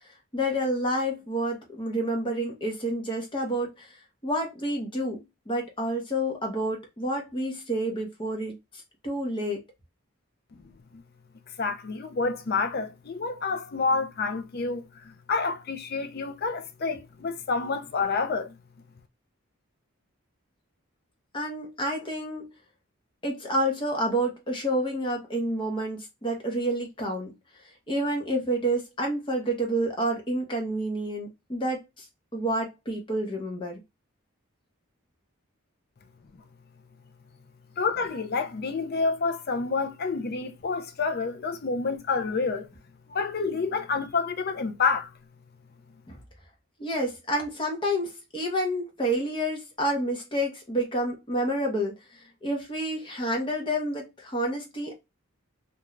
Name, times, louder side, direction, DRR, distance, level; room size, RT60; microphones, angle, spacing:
voice 1, 0.3-4.0 4.2-8.5 9.0-9.6 21.3-22.5 23.2-27.3 27.9-32.0 32.3-33.8 46.1-46.2 46.8-51.9 52.4-54.9, right 1 dB, 20° left, 0.8 m, -29 dB
voice 2, 11.6-18.5 37.8-42.7 43.1-45.1, left 4 dB, 45° left, 0.4 m, -28 dB
2.4 x 2.3 x 3.0 m
head